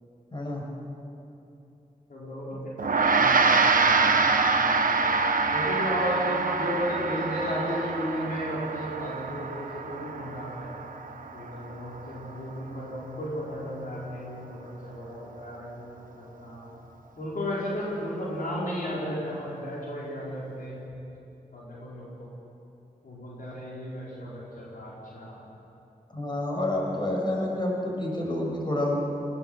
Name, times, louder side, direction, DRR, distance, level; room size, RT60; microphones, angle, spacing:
voice 1, 0.3-0.6 26.1-29.0, left 1 dB, 30° left, -1 dB, 7.0 m, -28 dB
voice 2, 2.1-5.1 5.5-10.7 11.3-16.7 17.2-21.0 21.5-22.3 23.0-25.4, equal, 70° left, -6 dB, 4.6 m, -34 dB
Gong, 2.8-12.4, right 4 dB, 65° right, 1.4 m, -25 dB
20.5 x 18.0 x 7.8 m, 2.9 s
cardioid pair, 45°, 15 cm